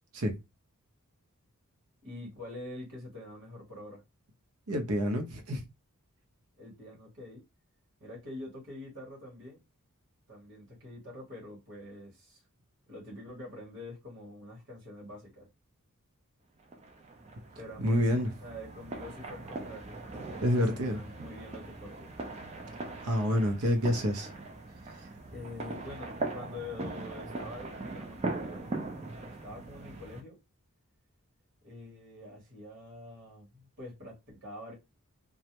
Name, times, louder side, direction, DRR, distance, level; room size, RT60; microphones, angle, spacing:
voice 1, 2.0-4.0 6.6-7.4 8.0-9.6 10.3-12.4 12.9-15.5 17.6-22.1 25.3-28.8 29.2-30.4 31.6-34.7, left 1 dB, 55° right, 1.1 m, -46 dB
voice 2, 4.7-5.6 17.8-18.3 20.4-21.0 23.0-24.3 25.0-25.1, equal, 75° right, 0.7 m, -28 dB
sound 1, 16.7-30.2, right 2 dB, 30° right, 0.4 m, -40 dB
2.3 x 2.1 x 2.8 m
head